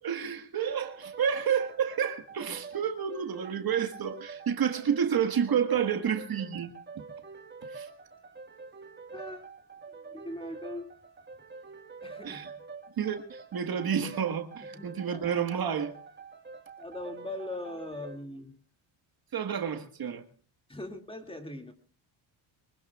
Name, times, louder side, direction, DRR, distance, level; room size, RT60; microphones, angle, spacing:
voice 1, 0.0-7.0 7.7-7.9 12.2-12.5 13.0-15.9 19.3-20.2, right 8 dB, 50° right, 1.6 m, -30 dB
sound 1, 0.8-18.2, right 5 dB, 25° right, 1.7 m, -46 dB
voice 2, 9.1-9.5 10.0-10.9 12.0-12.6 14.7-15.3 16.8-18.6 20.7-21.7, left 1 dB, 10° left, 2.3 m, -41 dB
23.5 x 20.5 x 2.4 m
cardioid pair, 80°, 46 cm